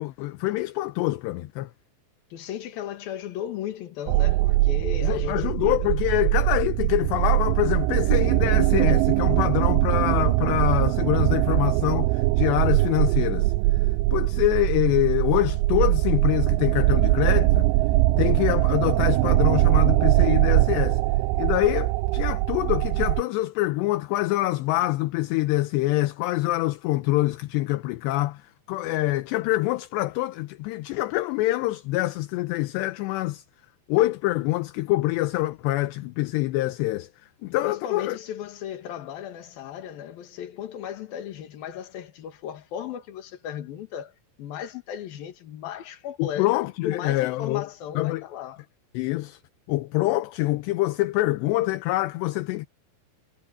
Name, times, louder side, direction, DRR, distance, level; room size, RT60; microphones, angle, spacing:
voice 1, 0.0-1.7 5.0-13.5 14.1-17.7 18.2-21.0 21.4-33.4 33.9-37.1 37.4-38.2 46.2-47.7 48.0-48.3 48.9-49.4 49.7-52.7, left 17 dB, 75° left, 2.7 m, -25 dB
voice 2, 2.3-6.2 37.6-44.1 44.4-46.5 46.8-48.6, left 10 dB, 60° left, 3.3 m, -36 dB
sound 1, 4.1-23.2, right 19 dB, 85° right, 3.0 m, -22 dB
omnidirectional pair, 5.5 m